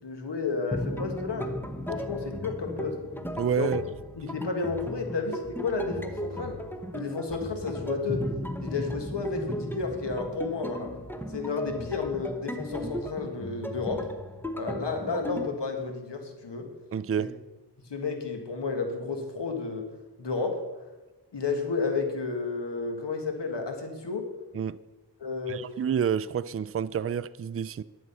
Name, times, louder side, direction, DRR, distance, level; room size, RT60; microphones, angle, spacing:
voice 1, 0.0-1.5 1.9-3.0 3.6-3.8 4.1-6.6 6.9-8.2 8.6-10.9 11.3-14.1 14.5-16.7 17.2-17.3 17.9-19.8 20.2-20.6 21.3-24.2 25.2-25.6, left 4 dB, 85° left, 1.7 m, -31 dB
sound 1, 0.7-15.5, equal, 5° left, 1.0 m, -36 dB
voice 2, 3.4-3.8 16.9-17.4 24.5-24.8 25.5-27.8, right 7 dB, 35° right, 0.4 m, -29 dB
11.0 x 7.6 x 5.5 m
wide cardioid pair, 45°, 41 cm